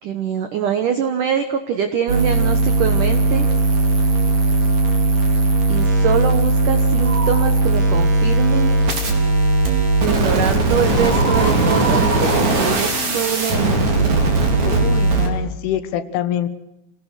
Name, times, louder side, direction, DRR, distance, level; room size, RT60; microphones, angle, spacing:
voice 1, 0.0-3.5 5.7-8.8 10.0-13.8, right 7 dB, 75° right, 8 dB, 1.8 m, -23 dB
sound 1, 2.1-15.3, right 2 dB, 40° right, 4.6 m, -18 dB
sound 2, 7.0-7.6 10.9-13.6, right 2 dB, 10° right, 2.8 m, -28 dB
voice 2, 12.9-13.3 14.7-16.5, left 10 dB, 85° left, 10 dB, 3.9 m, -25 dB
28.0 x 18.0 x 6.5 m, 0.88 s
omnidirectional pair, 5.5 m